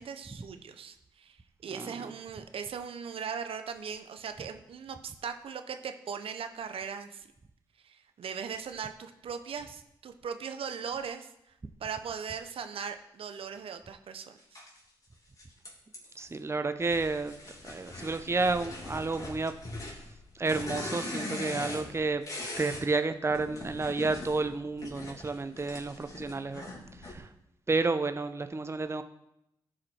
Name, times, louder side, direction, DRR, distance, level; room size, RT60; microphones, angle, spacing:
voice 1, 0.0-1.4 1.6-7.3 7.8-11.3 11.8-14.6, right 6 dB, 65° right, 8 dB, 0.8 m, -39 dB
voice 2, 1.7-2.1 16.2-17.4 17.6-19.5 20.3-22.2 22.6-26.7 27.0-27.3 27.7-29.0, right 3 dB, 25° right, 10 dB, 0.7 m, -31 dB
sound 1, 14.6-14.7 15.4-16.3 16.8-22.9 23.2-27.2, left 2 dB, 35° left, 3.1 m, -41 dB
13.5 x 5.0 x 4.4 m, 0.83 s
supercardioid pair, 50°, 10 cm